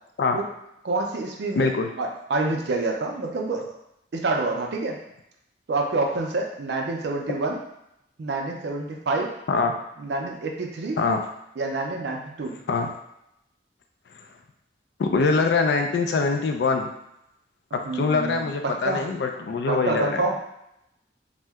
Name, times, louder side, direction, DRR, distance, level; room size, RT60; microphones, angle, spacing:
voice 1, 0.8-1.7 2.0-3.6 4.1-5.0 5.7-7.6 8.2-9.3 10.0-11.0 11.6-12.6 17.7-19.0 19.7-20.4, right 3 dB, 70° right, 1 dB, 0.4 m, -27 dB
voice 2, 1.6-1.9 9.5-9.8 11.0-11.2 12.7-12.9 15.0-16.9 17.9-20.2, left 4 dB, 70° left, 5 dB, 0.3 m, -23 dB
2.7 x 2.1 x 3.4 m, 0.82 s
head